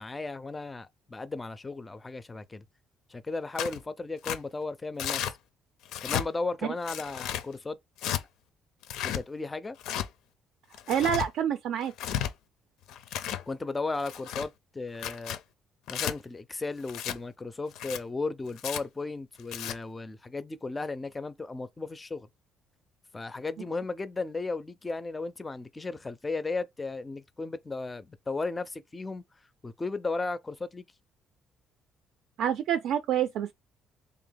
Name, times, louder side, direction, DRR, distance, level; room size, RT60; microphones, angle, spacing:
voice 1, 0.0-2.6 3.1-5.3 6.0-7.8 8.1-8.2 9.0-9.8 13.5-15.4 15.9-22.3 23.1-29.2 29.6-30.8, left 3 dB, 20° left, 0.4 m, -35 dB
Tearing, 3.6-3.8 4.2-4.4 5.0-5.3 5.9-6.3 6.8-7.4 8.0-8.2 8.8-9.2 9.8-10.1 10.7-11.3 11.9-12.3 12.9-13.4 14.0-14.5 14.9-15.4 15.9-16.1 16.9-17.2 17.7-18.0 18.6-18.8 19.4-19.7, left 10 dB, 85° left, 0.5 m, -33 dB
voice 2, 10.9-11.9 32.4-33.5, right 9 dB, 75° right, 0.4 m, -27 dB
3.4 x 2.7 x 3.8 m
cardioid pair, 125°, 0 cm